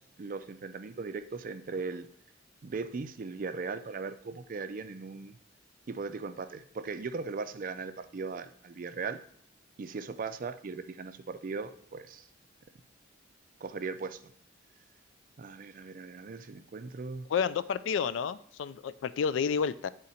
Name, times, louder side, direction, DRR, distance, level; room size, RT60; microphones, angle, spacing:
voice 1, 0.0-2.1 2.6-5.4 5.9-9.2 9.8-12.3 13.6-14.2 15.4-17.3, right 4 dB, 45° right, 11 dB, 0.4 m, -38 dB
voice 2, 17.3-19.9, left 6 dB, 70° left, 15 dB, 0.3 m, -30 dB
8.4 x 3.8 x 4.2 m, 0.63 s
head